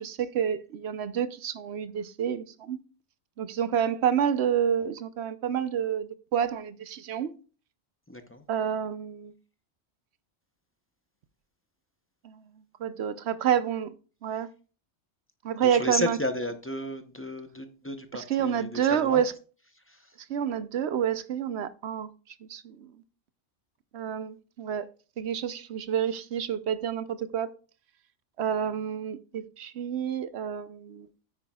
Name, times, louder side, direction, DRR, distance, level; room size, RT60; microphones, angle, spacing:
voice 1, 0.0-2.8 3.4-7.3 8.5-9.3 12.2-12.4 12.8-13.9 14.2-14.5 15.4-16.2 18.1-19.3 20.3-22.1 22.4-22.9 23.9-24.9 25.2-27.5 28.4-31.1, right 8 dB, 70° right, 0.9 m, -29 dB
voice 2, 8.1-8.4 15.6-19.2 19.7-20.2, left 1 dB, 15° left, 0.6 m, -33 dB
9.7 x 8.9 x 2.3 m
omnidirectional pair, 1.2 m